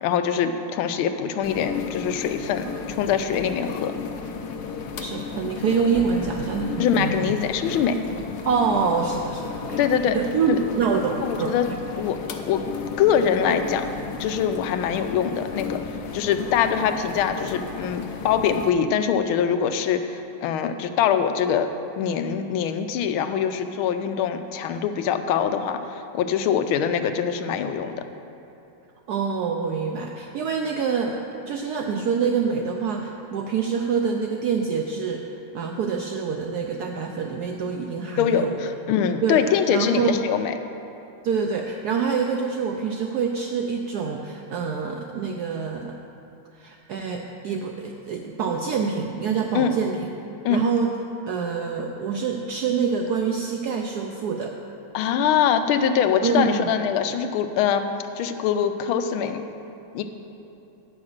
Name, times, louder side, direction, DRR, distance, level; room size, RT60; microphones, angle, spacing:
voice 1, 0.0-3.9 6.8-8.0 9.8-10.2 11.2-11.7 11.9-12.7 13.0-13.9 14.2-15.8 16.1-21.7 22.0-28.0 38.2-40.5 49.5-49.7 50.4-50.7 54.9-57.9 58.2-59.4 59.9-60.0, left 8 dB, 90° left, 8 dB, 1.4 m, -23 dB
sound 1, 1.4-18.7, left 5 dB, 70° left, 1.0 m, -34 dB
voice 2, 5.0-7.3 8.5-9.8 10.1-11.6 29.1-31.2 31.5-38.6 39.2-39.4 39.7-40.2 41.2-46.0 46.6-50.1 50.5-50.9 51.3-54.5 56.2-56.7, right 5 dB, 75° right, 2 dB, 0.8 m, -26 dB
9.6 x 5.8 x 6.4 m, 2.9 s
omnidirectional pair, 2.2 m